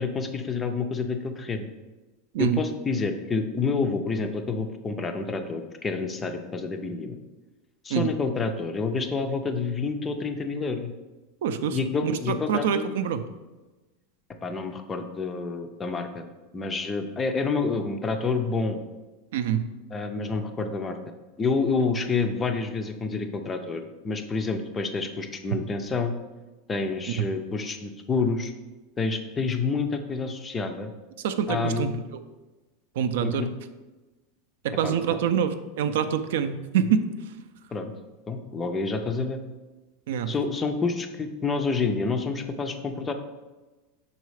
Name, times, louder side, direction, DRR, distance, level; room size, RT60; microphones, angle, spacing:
voice 1, 0.0-1.7 2.4-7.2 7.8-10.9 11.7-12.9 14.4-16.2 16.5-18.8 19.9-21.0 21.4-26.1 26.7-28.5 29.0-30.9 31.5-32.0 33.2-33.5 34.8-35.2 37.7-37.9 38.3-39.4 40.3-43.1, left 4 dB, 15° left, 6 dB, 0.4 m, -28 dB
voice 2, 11.4-13.2 19.3-19.7 27.2-27.3 31.2-32.0 33.0-33.5 34.6-37.0 40.1-40.3, right 8 dB, 70° right, 10 dB, 0.4 m, -25 dB
5.7 x 4.0 x 4.8 m, 1.2 s
supercardioid pair, 170°, 0 cm